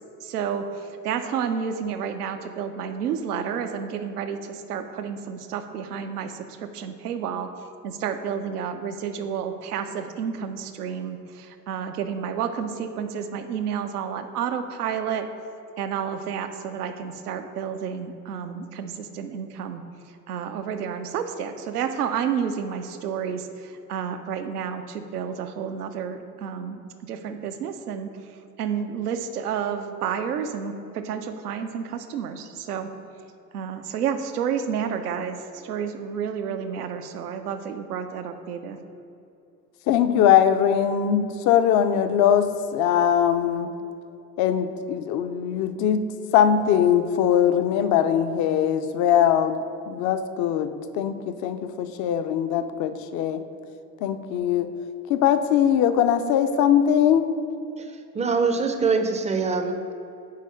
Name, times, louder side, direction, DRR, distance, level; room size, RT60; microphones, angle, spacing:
voice 1, 0.2-0.7 1.0-7.5 7.8-15.3 15.8-19.8 20.3-23.5 23.9-26.8 27.1-28.1 28.6-32.9 33.5-35.4 35.6-38.8, right 7 dB, 75° right, 8 dB, 0.7 m, -30 dB
voice 2, 39.9-43.7 44.4-46.0 46.3-49.6 49.9-50.7 50.9-53.4 54.0-54.7 55.1-57.2, left 9 dB, 40° left, 10 dB, 0.5 m, -21 dB
voice 3, 58.1-59.9, right 4 dB, 15° right, 6 dB, 0.6 m, -24 dB
6.5 x 4.8 x 5.3 m, 2.7 s
figure-of-eight pair, 65°, 47 cm